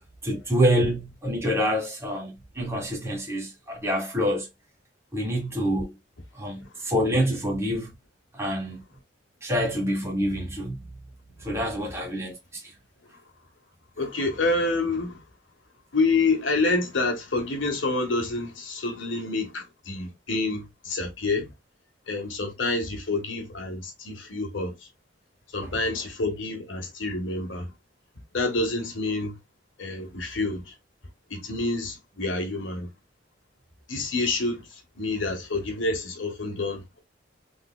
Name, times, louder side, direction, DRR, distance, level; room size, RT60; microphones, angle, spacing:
voice 1, 0.2-4.5 5.1-5.9 6.3-7.9 8.3-8.8 9.4-10.8 11.4-12.6 25.6-26.1, equal, 15° right, 1.4 m, -27 dB
voice 2, 14.0-15.2 15.9-21.5 22.1-24.7 25.5-27.7 28.3-29.4 29.8-30.7 31.3-32.9 33.9-37.0, left 3 dB, 85° left, 1.3 m, -28 dB
3.7 x 3.1 x 2.2 m
head